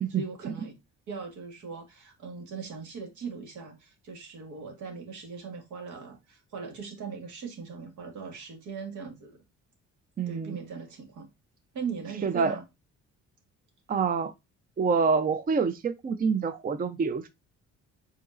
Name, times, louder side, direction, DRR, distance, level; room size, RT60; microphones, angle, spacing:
voice 1, 0.1-0.7 1.1-9.4 10.3-11.3 11.7-12.6, right 5 dB, 75° right, 1.8 m, -39 dB
voice 2, 10.2-10.6 12.2-12.6 13.9-14.3 14.8-17.3, right 5 dB, 30° right, 0.5 m, -26 dB
5.1 x 4.0 x 2.5 m
cardioid pair, 90°, 30 cm